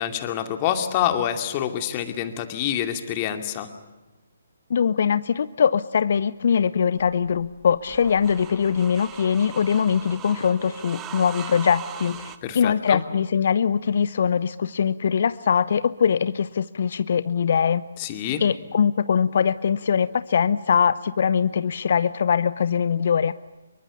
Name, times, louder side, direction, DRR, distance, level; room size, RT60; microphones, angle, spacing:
voice 1, 0.0-3.7 12.4-13.0 18.0-18.4, left 10 dB, 30° left, 7 dB, 2.5 m, -26 dB
voice 2, 4.7-17.8 18.4-23.3, left 7 dB, 55° left, 16 dB, 0.7 m, -22 dB
sound 1, 7.0-12.4, right 9 dB, 15° right, 1.7 m, -40 dB
26.0 x 23.5 x 7.1 m, 1.1 s
figure-of-eight pair, 140°, 0 cm